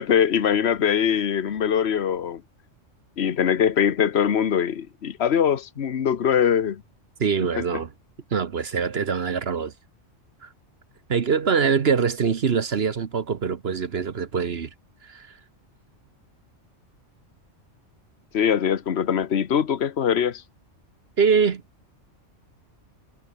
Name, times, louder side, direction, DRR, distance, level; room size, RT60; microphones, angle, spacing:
voice 1, 0.0-2.4 3.2-6.8 7.6-7.8 18.3-20.4, left 8 dB, 60° left, 1.3 m, -22 dB
voice 2, 7.2-7.9 8.3-9.7 10.4-10.5 11.1-14.7 15.1-15.3 21.2-21.6, right 6 dB, 55° right, 1.3 m, -23 dB
omnidirectional pair, 1.3 m